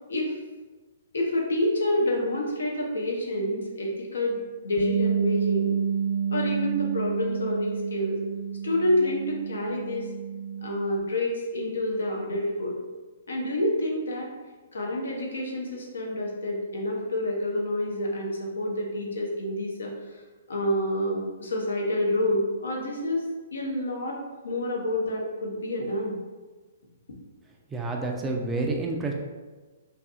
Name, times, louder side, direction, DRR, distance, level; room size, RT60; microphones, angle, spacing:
voice 1, 1.1-5.7 6.3-8.2 8.6-10.1 10.6-12.8 13.3-14.3 14.7-19.9 20.5-23.2 23.5-24.2 24.4-26.2, left 1 dB, 70° left, -1 dB, 0.6 m, -28 dB
Bass guitar, 4.8-11.0, right 7 dB, ahead, 0.7 m, -29 dB
voice 2, 27.7-29.1, right 2 dB, 15° right, 1 dB, 0.3 m, -29 dB
2.6 x 2.4 x 2.3 m, 1.3 s
figure-of-eight pair, 120°, 0 cm